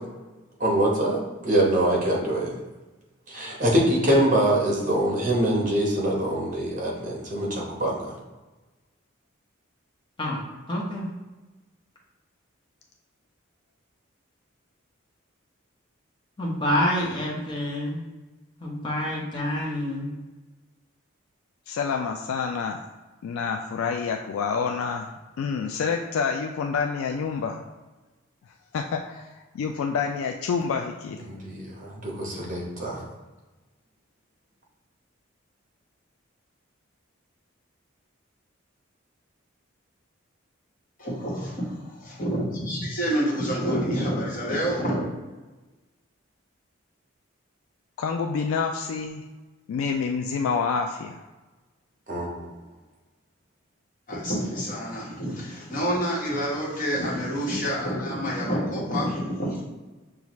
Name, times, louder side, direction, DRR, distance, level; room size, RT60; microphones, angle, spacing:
voice 1, 0.6-2.5 3.3-8.1 31.2-33.0 52.1-52.5, right 1 dB, 40° right, -2 dB, 0.9 m, -24 dB
voice 2, 10.7-11.1 16.4-18.0 18.6-20.1, left 1 dB, 25° left, -4 dB, 0.8 m, -27 dB
voice 3, 21.7-22.8 23.2-27.6 28.7-29.3 29.5-31.2 48.0-49.2 49.7-51.2, left 5 dB, 85° left, 3 dB, 0.3 m, -28 dB
voice 4, 41.0-45.1 54.1-59.6, equal, 40° left, -6 dB, 1.3 m, -28 dB
5.6 x 2.4 x 3.0 m, 1.2 s
head